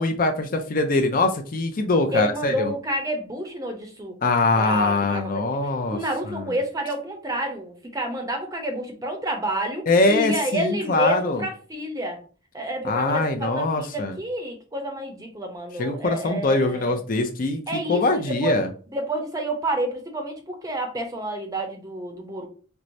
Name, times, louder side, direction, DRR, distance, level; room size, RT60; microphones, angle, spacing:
voice 1, 0.0-2.7 4.2-6.0 6.3-6.5 9.9-11.4 12.8-14.2 15.8-18.7, left 2 dB, 45° left, 5 dB, 0.4 m, -23 dB
voice 2, 2.1-4.2 4.6-12.2 12.5-16.9 17.7-18.6 18.9-22.5, right 1 dB, 15° right, 3 dB, 0.6 m, -29 dB
4.5 x 2.0 x 2.6 m, 0.39 s
head